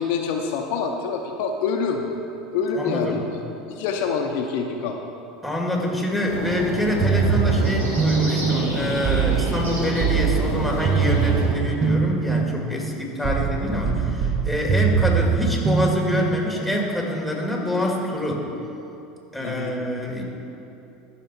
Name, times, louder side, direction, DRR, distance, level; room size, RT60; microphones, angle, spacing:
voice 1, 0.0-2.1 2.5-3.3 3.7-5.0 19.4-19.9, left 5 dB, 70° left, 2 dB, 0.7 m, -26 dB
voice 2, 2.7-3.3 5.4-18.5 19.3-20.2, left 1 dB, ahead, -1 dB, 2.3 m, -26 dB
sound 1, 6.2-11.5, equal, 85° right, 2.1 m, -28 dB
sound 2, 7.0-16.8, right 6 dB, 40° right, 0.8 m, -23 dB
14.0 x 5.9 x 4.4 m, 2.8 s
hypercardioid pair, 80°, 0 cm